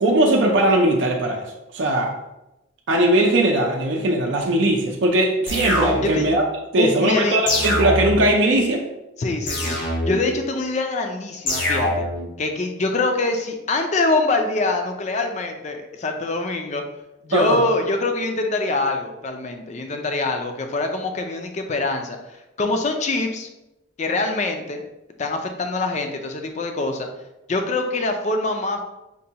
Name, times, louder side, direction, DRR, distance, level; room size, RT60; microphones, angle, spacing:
voice 1, 0.0-1.4 1.7-2.1 2.9-6.4 6.7-8.8 17.3-17.6, right 1 dB, 65° right, 0 dB, 0.5 m, -19 dB
sound 1, 5.5-6.4 7.5-8.4 9.5-10.4 11.5-12.3, left 1 dB, 65° left, 1.0 m, -24 dB
voice 2, 6.8-7.4 9.2-9.8 10.1-12.0 12.4-16.8 17.2-23.5 24.0-24.8 25.2-27.1 27.5-28.8, left 2 dB, 35° left, 5 dB, 0.4 m, -24 dB
5.1 x 2.2 x 2.8 m, 0.95 s
head